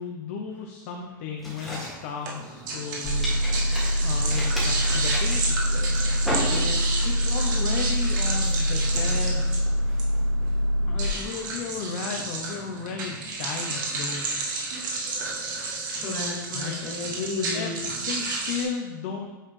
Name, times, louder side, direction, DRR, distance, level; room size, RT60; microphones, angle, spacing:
voice 1, 0.0-3.3 4.0-5.9 6.4-6.7 7.0-9.5 10.9-14.3 16.5-16.8 17.5-19.4, left 5 dB, 40° left, 3 dB, 0.5 m, -34 dB
sound 1, 1.4-2.9 3.2-7.0 7.4-7.7 8.2-10.5, equal, ahead, 1.5 m, -35 dB
sound 2, 2.2-18.6, right 3 dB, 65° right, 1.6 m, -32 dB
sound 3, 3.0-11.1, equal, 80° left, 2.1 m, -24 dB
voice 2, 6.4-6.8 16.0-17.7, left 3 dB, 25° left, -4 dB, 1.9 m, -33 dB
8.8 x 4.0 x 3.1 m, 1.2 s
supercardioid pair, 170°, 11 cm